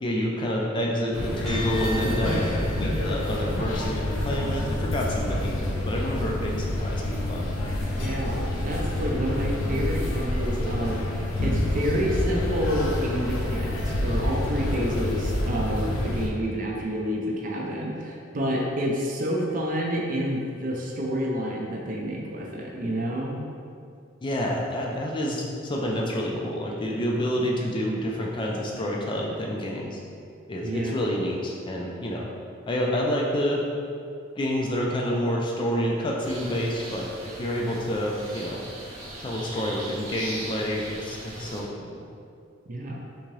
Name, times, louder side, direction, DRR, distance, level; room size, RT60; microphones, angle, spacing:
voice 1, 0.0-7.5 24.2-30.0 30.5-32.3 32.7-33.6 34.4-37.1 37.4-38.6 39.2-42.0, equal, 25° left, -2 dB, 0.3 m, -28 dB
sound 1, 1.1-16.3, left 1 dB, 80° left, 0.5 m, -27 dB
sound 2, 1.5-10.1, equal, ahead, 0.9 m, -43 dB
voice 2, 7.9-23.4 30.6-31.0 42.7-43.1, equal, 40° right, -1 dB, 0.5 m, -29 dB
sound 3, 36.2-41.6, right 1 dB, 90° right, 0.8 m, -39 dB
3.6 x 2.8 x 3.0 m, 2.4 s
head